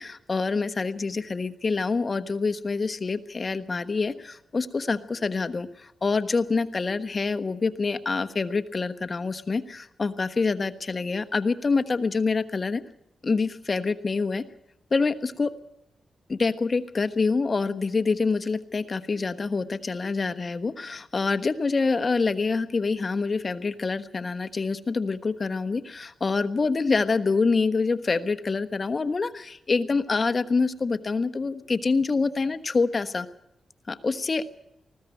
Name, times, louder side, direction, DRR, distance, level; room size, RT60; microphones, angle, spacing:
voice 1, 0.0-12.8 13.2-14.4 14.9-15.5 16.3-33.3 33.9-34.5, left 4 dB, 45° left, 12 dB, 1.2 m, -26 dB
20.0 x 15.0 x 9.2 m, 0.81 s
cardioid pair, 65°, 0 cm